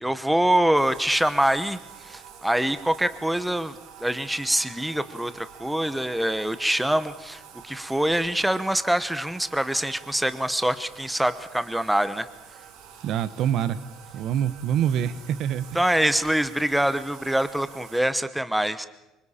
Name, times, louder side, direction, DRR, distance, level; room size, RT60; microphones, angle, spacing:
voice 1, 0.0-12.3 15.7-18.9, right 1 dB, 5° right, 12 dB, 0.9 m, -25 dB
Bathtub (filling or washing), 0.7-18.0, right 8 dB, 75° right, 2.9 m, -47 dB
voice 2, 13.0-13.8 14.1-15.8, right 9 dB, 55° right, 15 dB, 1.0 m, -25 dB
25.5 x 24.0 x 4.3 m, 0.98 s
cardioid pair, 140°, 0 cm